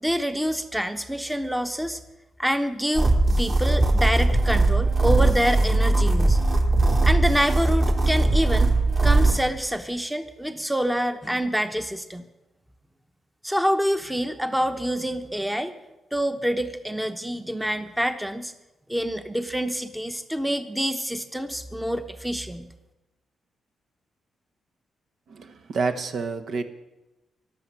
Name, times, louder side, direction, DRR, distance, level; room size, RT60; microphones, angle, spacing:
voice 1, 0.0-2.0 2.4-6.4 7.0-8.7 9.0-12.3 13.4-15.7 16.1-18.5 18.9-22.7, equal, 5° right, 8 dB, 1.0 m, -26 dB
sound 1, 3.0-9.4, right 2 dB, 40° right, 2.4 m, -20 dB
voice 2, 25.3-26.6, right 4 dB, 65° right, 7 dB, 1.3 m, -28 dB
13.5 x 11.5 x 7.5 m, 1.0 s
cardioid pair, 90°, 0 cm